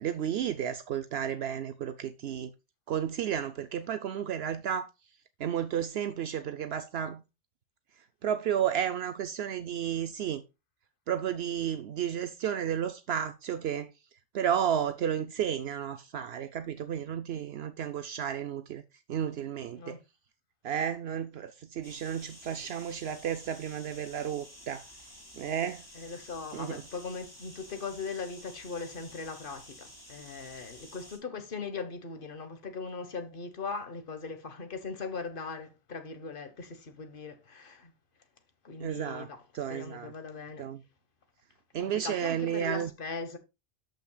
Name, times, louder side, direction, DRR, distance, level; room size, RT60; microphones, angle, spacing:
voice 1, 0.0-2.5 2.9-4.9 5.4-7.2 8.2-10.4 11.1-13.9 14.3-18.8 19.1-20.0 20.6-24.8 25.4-25.8 26.5-26.8 38.8-39.3 39.5-40.1 40.6-40.8 41.7-42.9, right 9 dB, 75° right, 0.9 m, -32 dB
sound 1, 21.8-31.2, left 1 dB, 20° left, 2.8 m, -51 dB
voice 2, 25.9-37.9 38.6-39.4 39.7-40.6 41.8-43.4, left 4 dB, 55° left, 1.4 m, -39 dB
13.0 x 5.8 x 2.2 m
omnidirectional pair, 1.1 m